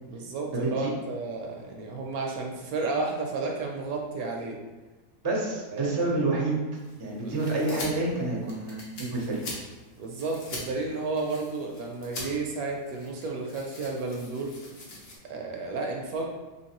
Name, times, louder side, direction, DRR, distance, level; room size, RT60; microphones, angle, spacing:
voice 1, 0.1-4.6 5.7-5.9 7.2-7.3 10.0-14.5 15.2-16.3, right 3 dB, 70° right, 1 dB, 0.9 m, -32 dB
voice 2, 5.2-6.6 7.0-9.4, right 2 dB, 35° right, -3 dB, 0.3 m, -28 dB
sound 1, 6.7-15.2, left 2 dB, 55° left, 1.1 m, -43 dB
3.8 x 2.9 x 2.9 m, 1.2 s
omnidirectional pair, 1.8 m